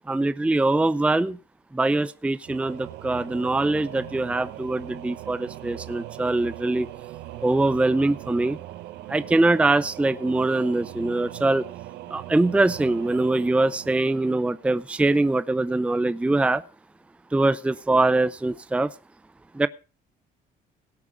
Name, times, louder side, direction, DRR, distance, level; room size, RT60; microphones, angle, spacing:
voice 1, 0.1-1.4 1.7-6.9 7.4-8.6 9.1-11.6 12.1-16.6 17.3-18.9 19.5-19.7, right 2 dB, 5° right, 15 dB, 0.5 m, -23 dB
Singing / Musical instrument, 2.4-15.0, right 15 dB, 85° right, 1.0 m, -40 dB
17.5 x 8.4 x 4.8 m, 0.35 s
cardioid pair, 110°, 17 cm